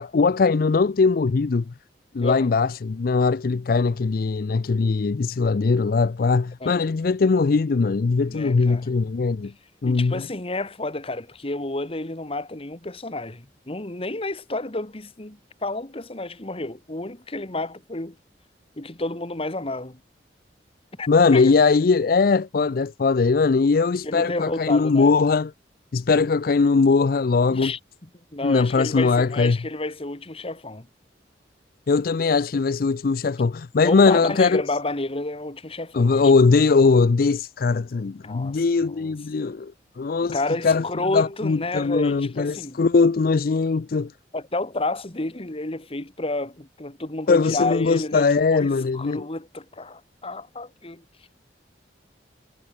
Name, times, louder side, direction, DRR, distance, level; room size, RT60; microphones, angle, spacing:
voice 1, 0.0-1.7 2.1-9.5 9.8-10.3 21.1-25.5 25.9-27.7 28.4-29.6 31.9-34.6 35.9-40.8 41.1-44.1 47.3-49.3, left 4 dB, 55° left, 0.4 m, -20 dB
voice 2, 2.2-2.5 6.6-6.8 8.3-8.8 9.9-18.2 18.8-20.0 21.0-21.7 24.0-25.1 27.5-27.8 28.3-30.9 33.8-36.3 38.2-39.1 40.3-42.8 44.3-51.0, left 2 dB, 35° left, 1.7 m, -30 dB
head